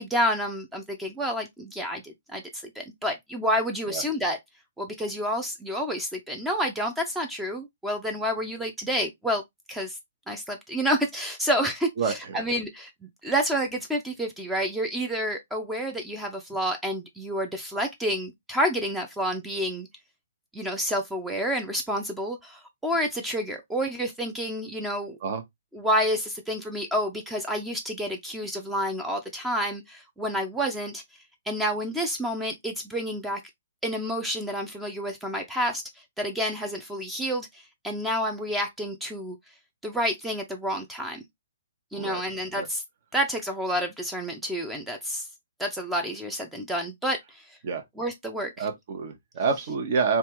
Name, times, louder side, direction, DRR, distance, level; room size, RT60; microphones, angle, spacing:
voice 1, 0.0-4.4 4.8-9.4 9.7-10.0 10.3-19.9 20.5-25.2 25.7-31.0 31.5-33.4 33.8-39.4 39.8-41.2 41.9-42.8 43.1-45.3 45.6-47.6 48.0-48.7, equal, 5° right, 0.5 m, -29 dB
voice 2, 12.0-12.4 25.2-25.4 41.9-42.2 42.5-42.7 47.6-47.8 48.6-50.2, right 5 dB, 50° right, 0.9 m, -28 dB
3.3 x 2.4 x 2.9 m
hypercardioid pair, 130°, 0 cm